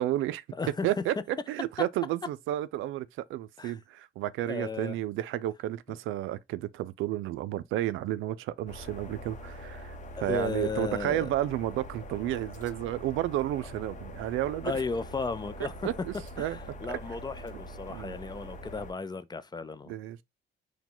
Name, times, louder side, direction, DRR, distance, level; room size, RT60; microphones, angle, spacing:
voice 1, 0.0-0.4 0.8-14.7 15.8-16.6 16.9-17.0 17.9-18.1 19.9-20.2, right 13 dB, 85° right, 0.4 m, -32 dB
voice 2, 0.6-1.0 3.6-3.8 4.5-5.0 10.2-11.3 14.6-15.7 16.4-19.9, left 4 dB, 20° left, 0.4 m, -35 dB
sound 1, 8.7-18.9, equal, 40° left, 0.8 m, -44 dB
4.8 x 2.2 x 3.7 m
cardioid pair, 90°, 20 cm